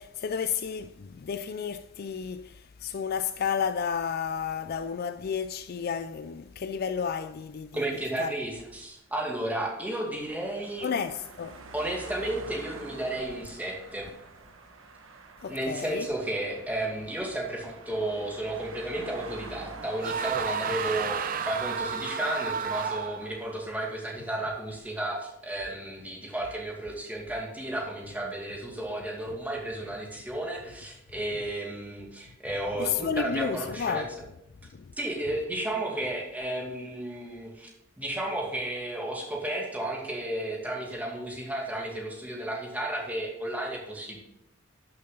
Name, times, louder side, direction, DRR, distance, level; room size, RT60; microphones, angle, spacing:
voice 1, 0.0-7.7 8.2-8.3 10.8-11.6 15.4-16.1 32.8-34.1 34.7-34.8, left 7 dB, 45° left, 0.4 m, -31 dB
voice 2, 7.7-10.9 11.7-14.1 15.5-34.1 35.0-37.7 38.0-44.2, right 1 dB, 10° right, 2.3 m, -33 dB
sound 1, 9.0-24.4, right 3 dB, 70° right, 1.3 m, -47 dB
sound 2, 20.0-23.4, right 6 dB, 40° right, 0.5 m, -31 dB
12.0 x 6.8 x 3.9 m
head